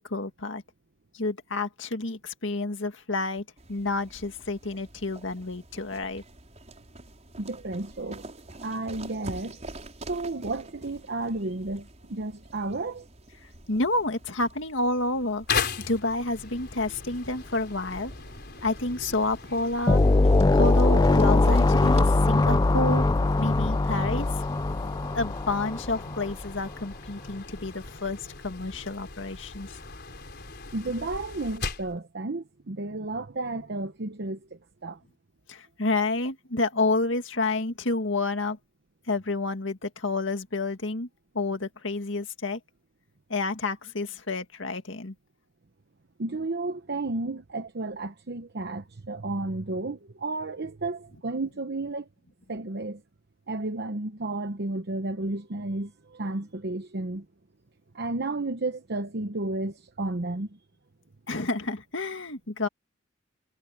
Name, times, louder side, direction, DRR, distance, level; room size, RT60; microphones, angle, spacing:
voice 1, 0.1-0.6 1.1-3.4 3.7-6.2 13.7-15.5 15.9-18.1 18.6-20.0 20.5-23.1 23.4-24.3 25.1-28.2 28.4-29.8 35.5-38.6 39.1-41.1 41.3-42.6 43.3-45.1 61.3-62.7, left 2 dB, 75° left, 2.0 m, -29 dB
sound 1, 3.6-22.2, right 2 dB, 35° right, 5.4 m, -47 dB
voice 2, 7.4-8.2 8.5-9.6 10.1-13.1 24.7-25.0 30.7-35.0 46.2-52.1 52.5-53.0 53.5-57.3 57.9-60.6, right 2 dB, 60° right, 0.9 m, -32 dB
sound 2, 15.5-32.0, left 5 dB, 60° left, 4.3 m, -38 dB
sound 3, 19.9-26.3, left 2 dB, 20° left, 0.4 m, -21 dB
head